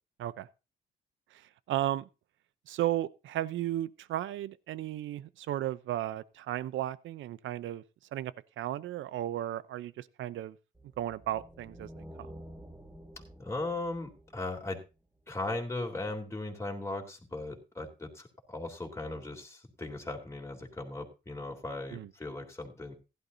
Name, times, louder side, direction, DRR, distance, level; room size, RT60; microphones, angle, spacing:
voice 1, 1.3-2.1 2.7-7.8 8.1-10.6 11.0-12.0 21.9-22.1, right 13 dB, 75° right, 0.7 m, -34 dB
sound 1, 10.7-15.2, equal, 10° right, 1.7 m, -50 dB
voice 2, 13.4-14.8 15.3-22.9, left 2 dB, 15° left, 3.3 m, -38 dB
15.5 x 11.5 x 2.8 m
cardioid pair, 90°, 20 cm